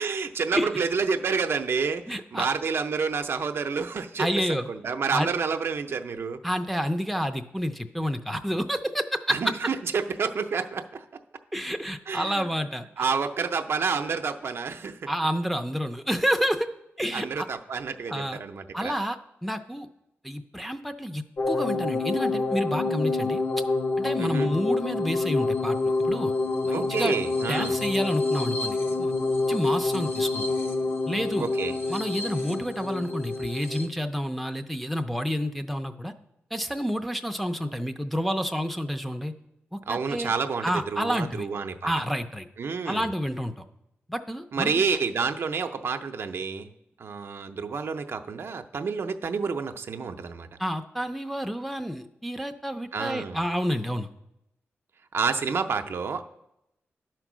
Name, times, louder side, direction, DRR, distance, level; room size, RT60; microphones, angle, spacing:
voice 1, 0.0-6.4 9.3-11.1 12.1-12.7 13.0-15.1 17.1-18.9 24.2-24.5 26.7-27.8 31.4-31.8 39.9-41.9 42.6-43.1 44.5-46.7 47.0-50.5 52.9-53.4 55.1-56.2, right 5 dB, 65° right, 7 dB, 0.5 m, -29 dB
voice 2, 2.1-2.5 4.2-4.7 5.1-5.3 6.4-9.4 11.5-12.8 15.1-16.7 17.0-17.5 18.1-18.4 18.7-19.2 19.4-19.9 20.2-23.4 24.0-25.8 26.1-26.3 26.6-27.1 27.5-29.1 29.5-30.4 31.1-31.5 31.9-36.1 36.5-39.3 39.7-40.3 40.6-41.5 41.8-42.5 42.9-43.6 44.1-44.7 50.6-54.1, equal, ahead, 6 dB, 0.5 m, -29 dB
sound 1, 21.4-33.9, left 3 dB, 55° left, 0.8 m, -27 dB
11.0 x 4.5 x 6.1 m, 0.84 s
wide cardioid pair, 105°, 5 cm